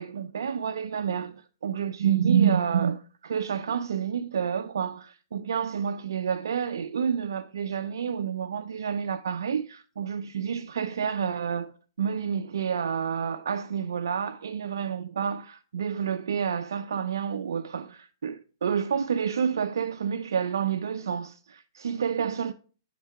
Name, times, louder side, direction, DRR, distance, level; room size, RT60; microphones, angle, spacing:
voice 1, 0.0-11.7 12.0-22.5, right 7 dB, 75° right, 0.4 m, -29 dB
8.4 x 3.6 x 4.6 m
hypercardioid pair, 135°, 2 cm